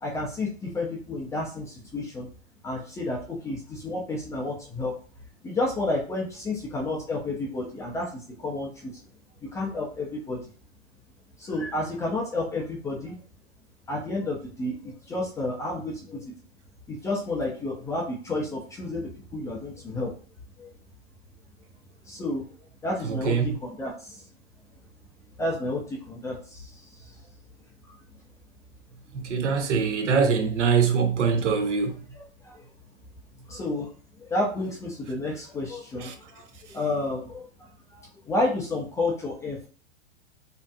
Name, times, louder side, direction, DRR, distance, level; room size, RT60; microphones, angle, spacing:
voice 1, 0.0-2.3 2.6-4.9 5.4-8.9 9.4-10.4 11.4-13.2 13.9-16.2 16.9-20.1 20.6-20.7 22.0-22.4 22.8-24.3 25.4-27.2 27.9-28.0 32.1-32.6 33.5-33.9 34.2-37.5 37.9-39.7, left 2 dB, 10° left, 0.3 m, -31 dB
voice 2, 23.0-23.5 29.2-31.9, right 5 dB, 85° right, 0.7 m, -23 dB
2.6 x 2.3 x 2.2 m
hypercardioid pair, 120°, 35 cm